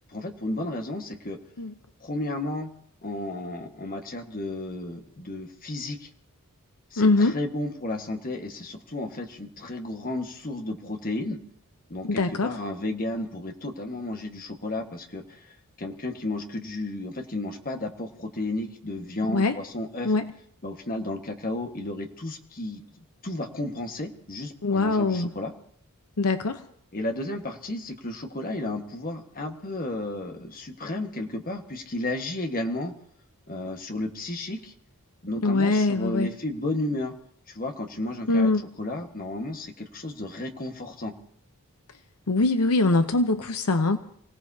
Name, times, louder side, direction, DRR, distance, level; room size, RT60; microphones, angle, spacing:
voice 1, 0.1-1.4 2.0-2.7 3.0-6.1 6.9-11.4 11.9-20.1 20.6-22.8 23.2-25.5 26.9-32.9 33.5-34.7 35.2-37.1 37.5-38.5 38.8-41.1, left 2 dB, 40° left, 4 dB, 1.5 m, -33 dB
voice 2, 7.0-7.4 12.0-12.5 19.3-19.6 20.0-20.3 24.6-25.3 26.2-26.6 35.4-36.3 38.3-38.6 42.3-44.0, left 3 dB, 80° left, 8 dB, 0.8 m, -22 dB
29.0 x 17.0 x 2.8 m, 0.64 s
head